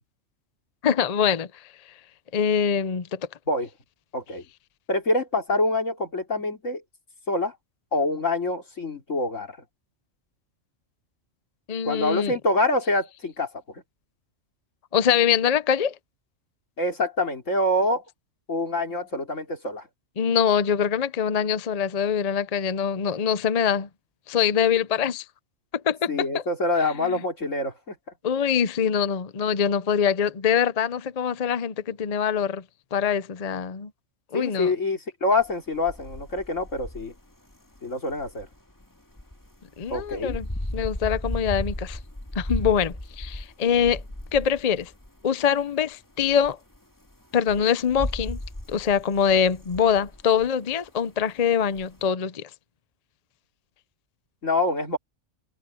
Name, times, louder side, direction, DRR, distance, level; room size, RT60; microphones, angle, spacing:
voice 1, 0.8-1.5 2.3-3.2 11.7-12.4 14.9-15.9 20.2-23.9 24.3-25.2 25.8-26.4 27.0-27.2 28.2-32.6 32.9-33.9 34.3-34.7 39.8-40.5 40.7-42.0 42.4-44.0 44.3-44.9 45.2-46.6 47.3-48.4 48.7-52.5, left 7 dB, 40° left, 0.7 m, -24 dB
voice 2, 4.9-6.8 7.3-7.5 7.9-9.6 11.8-13.5 16.8-18.0 18.5-19.9 26.1-28.0 34.3-37.1 37.8-38.5 39.9-40.4 54.4-55.0, left 2 dB, 80° left, 3.7 m, -26 dB
sound 1, 35.4-45.6 46.2-46.8 47.0-50.5 51.2-51.3 51.8-52.0, left 1 dB, 15° left, 1.9 m, -35 dB
omnidirectional pair, 1.3 m